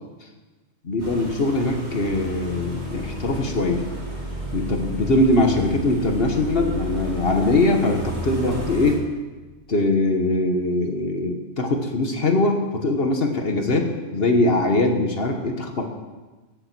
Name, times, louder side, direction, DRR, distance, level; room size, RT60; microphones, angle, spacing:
voice 1, 0.8-3.8 4.5-9.0 9.7-15.9, left 2 dB, 50° left, 4 dB, 1.4 m, -22 dB
sound 1, 1.0-9.0, equal, 35° right, 2.8 m, -32 dB
16.5 x 7.0 x 6.0 m, 1.3 s
omnidirectional pair, 1.3 m